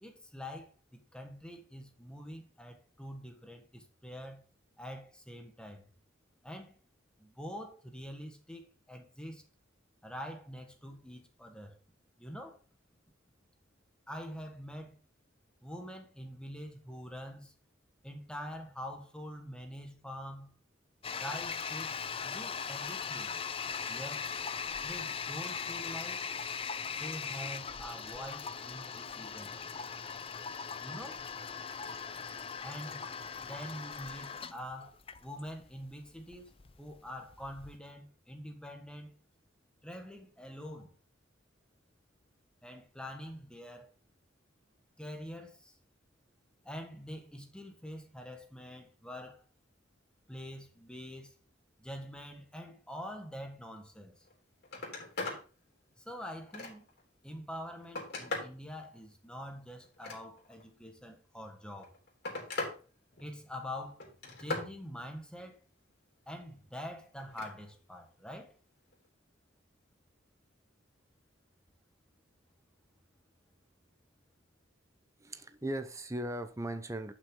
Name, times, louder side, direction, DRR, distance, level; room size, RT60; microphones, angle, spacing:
voice 1, 0.0-4.4 4.8-5.9 6.4-6.8 7.2-9.4 10.0-11.8 12.2-12.6 14.1-15.0 15.6-17.5 18.0-20.5 21.1-23.3 23.9-24.3 24.8-26.2 26.9-29.7 30.8-31.2 32.6-33.0 33.4-34.9 35.2-36.5 36.8-39.1 39.8-40.9 42.6-43.9 45.0-45.8 46.6-49.4 50.3-51.3 51.8-54.3 56.0-56.9 57.2-61.9 63.2-64.0 64.4-65.6 66.3-68.5, equal, 5° left, 1.4 m, -45 dB
Toilet flush, 21.0-37.8, left 6 dB, 30° left, 0.5 m, -39 dB
Telephone, 54.2-54.3 54.6-55.4 55.9-57.0 57.6-58.6 59.8-60.6 61.6-62.8 63.1-63.6 64.0-64.7 67.2-67.5 68.9-69.1, left 2 dB, 55° left, 3.4 m, -40 dB
voice 2, 75.2-77.1, right 1 dB, 15° right, 0.8 m, -38 dB
11.0 x 6.1 x 3.8 m
head